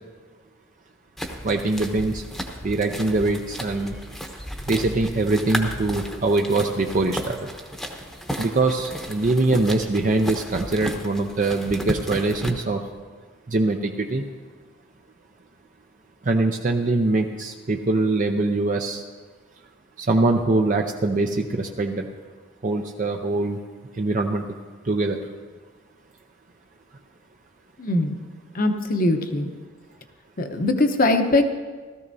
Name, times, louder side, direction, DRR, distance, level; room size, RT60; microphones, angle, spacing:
sound 1, 1.2-12.5, equal, ahead, 0.9 m, -34 dB
voice 1, 1.4-2.2 2.6-4.0 4.7-7.5 8.4-12.8 13.5-14.2 16.3-19.0 20.0-22.1 22.6-23.6 24.0-24.4 24.8-25.2, right 2 dB, 40° right, 3 dB, 0.5 m, -23 dB
voice 2, 27.8-28.1 28.5-29.5 30.4-31.4, left 2 dB, 45° left, 6 dB, 0.9 m, -21 dB
17.0 x 13.5 x 2.7 m, 1.5 s
head